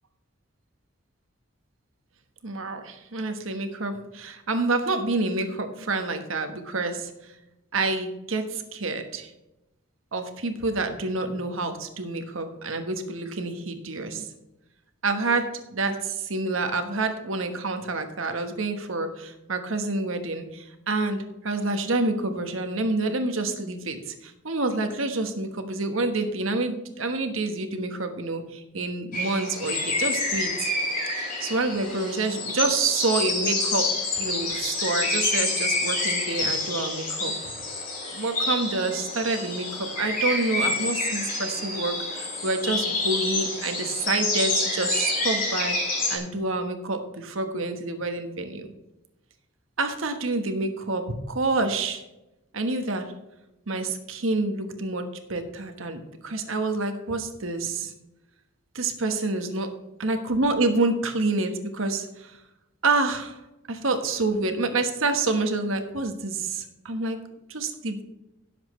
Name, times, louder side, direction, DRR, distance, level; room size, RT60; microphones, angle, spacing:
voice 1, 2.4-7.3 7.7-9.3 10.1-14.3 15.0-30.7 31.1-37.5 38.1-45.8 46.1-48.7 49.8-52.0 52.5-53.1 53.7-57.9 58.7-59.7 60.0-62.4 62.8-63.4 63.7-67.2 67.5-68.0, right 3 dB, 80° right, 6 dB, 1.3 m, -28 dB
sound 1, 29.1-46.2, left 2 dB, 40° left, 4.5 m, -28 dB
17.0 x 7.4 x 3.2 m, 0.95 s
head